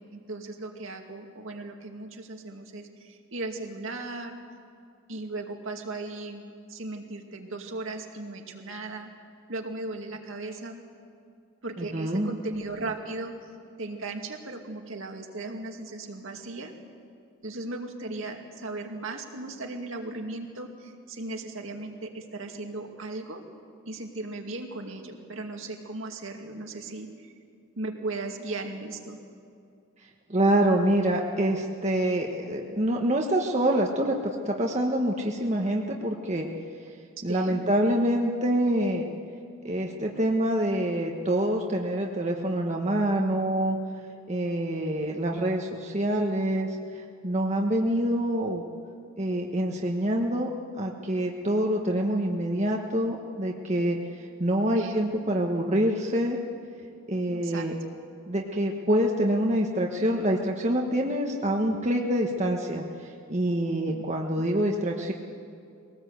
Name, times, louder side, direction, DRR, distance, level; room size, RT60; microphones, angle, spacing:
voice 1, 0.1-4.4 5.1-9.1 9.5-10.8 11.6-13.3 13.8-16.7 17.4-23.4 23.9-27.3 27.8-29.2 37.3-37.6 54.7-55.2 57.3-57.7 63.9-64.0 64.4-64.5, right 2 dB, 65° right, 2 dB, 2.3 m, -37 dB
voice 2, 11.8-12.3 30.3-34.2 34.4-36.5 37.2-39.0 39.6-43.8 44.3-46.7 47.2-48.6 49.2-50.5 50.8-54.0 54.4-56.4 57.1-57.8 58.3-62.8 63.3-65.1, right 1 dB, 35° right, 0 dB, 1.3 m, -26 dB
22.5 x 18.5 x 8.1 m, 2.5 s
head